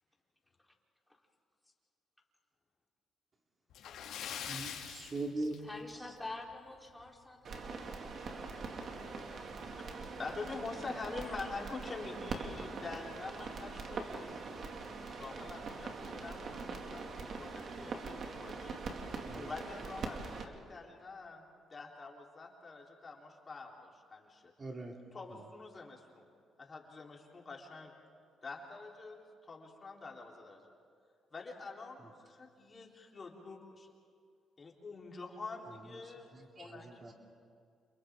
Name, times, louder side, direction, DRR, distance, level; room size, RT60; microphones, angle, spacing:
Splash splatter, 3.7-6.1 6.4-6.6 7.0-7.1 8.5-8.6 9.0-9.1 9.7-9.9, left 8 dB, 85° left, 2.8 m, -43 dB
voice 1, 4.5-5.6 19.3-19.5 24.6-24.9 36.3-37.1, right 2 dB, 35° right, 1 dB, 2.5 m, -41 dB
voice 2, 5.6-7.9 10.1-10.4 10.6-11.0, left 2 dB, 10° left, -2 dB, 3.9 m, -48 dB
sound 1, 7.4-20.4, right 4 dB, 55° right, 2.4 m, -43 dB
voice 3, 9.8-14.4 15.1-24.5 25.1-26.3 26.6-27.9 28.4-30.6 31.3-33.9 34.6-36.3 36.6-37.1, left 4 dB, 35° left, -1 dB, 4.0 m, -46 dB
30.0 x 29.0 x 3.8 m, 2.3 s
cardioid pair, 90°, 0 cm